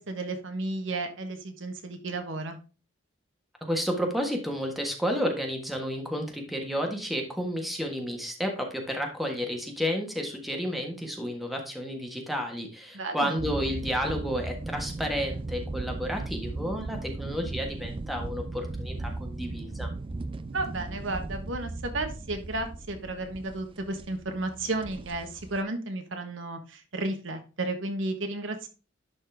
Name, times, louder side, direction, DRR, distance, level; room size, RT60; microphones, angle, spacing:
voice 1, 0.0-2.6 12.9-13.4 20.5-28.7, right 2 dB, 70° right, 6 dB, 1.3 m, -33 dB
voice 2, 3.6-19.9, equal, ahead, 2 dB, 1.5 m, -31 dB
sound 1, 13.4-25.6, right 2 dB, 25° right, 0.4 m, -37 dB
11.0 x 4.2 x 3.4 m, 0.34 s
head